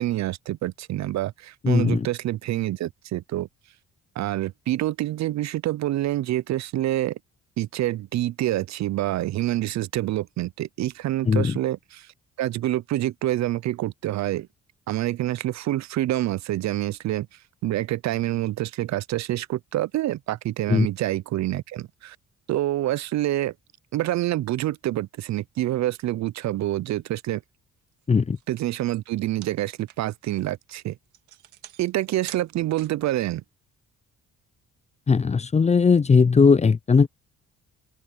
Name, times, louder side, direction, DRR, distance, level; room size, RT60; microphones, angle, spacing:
voice 1, 0.0-3.5 4.2-7.2 7.6-12.1 12.4-14.5 14.9-22.2 22.5-23.5 23.9-27.4 28.5-31.0 31.8-33.4, right 14 dB, 65° right, 0.5 m, -27 dB
voice 2, 1.6-2.1 11.3-11.5 20.7-20.9 28.1-28.4 35.1-37.1, left 5 dB, 20° left, 0.5 m, -18 dB
sound 1, 27.9-28.0 28.3-33.1, right 13 dB, 80° right, 1.9 m, -47 dB
open air
cardioid pair, 90°, 30 cm